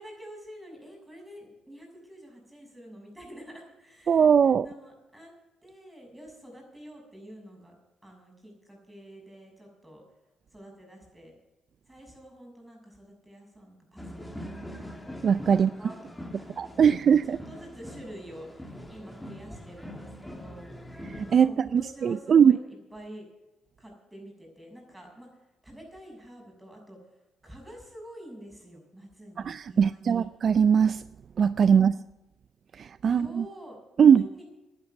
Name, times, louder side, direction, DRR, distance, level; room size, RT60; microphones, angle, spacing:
voice 1, 0.0-4.3 4.6-5.3 5.6-7.7 8.0-10.0 10.5-11.3 11.9-14.5 15.5-20.7 21.3-23.2 23.8-25.3 25.6-27.0 27.4-30.3 31.6-32.0 33.0-34.5, equal, 10° right, 1 dB, 6.5 m, -47 dB
voice 2, 4.1-4.7 15.2-15.7 16.6-17.4 21.3-22.5 29.4-31.0 31.4-31.9 32.8-33.4 34.0-34.2, right 7 dB, 50° right, 15 dB, 0.4 m, -20 dB
sound 1, 14.0-21.4, equal, 5° left, 2.2 m, -43 dB
11.0 x 11.0 x 7.9 m, 1.0 s
cardioid pair, 90°, 0 cm